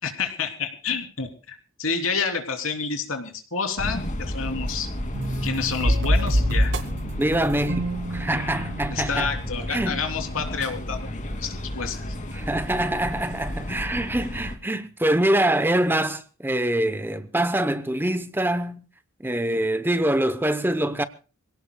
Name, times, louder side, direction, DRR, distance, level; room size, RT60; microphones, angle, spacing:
voice 1, 0.0-4.9 5.4-6.7 8.9-11.1 11.4-12.0, left 5 dB, 70° left, 3.3 m, -29 dB
sound 1, 3.8-14.6, left 1 dB, 35° left, 2.6 m, -33 dB
sound 2, 5.1-11.9, equal, 65° right, 2.1 m, -27 dB
voice 2, 7.2-9.3 9.7-10.0 12.3-18.8 19.2-21.0, right 1 dB, 10° right, 0.8 m, -24 dB
26.5 x 17.5 x 2.3 m
head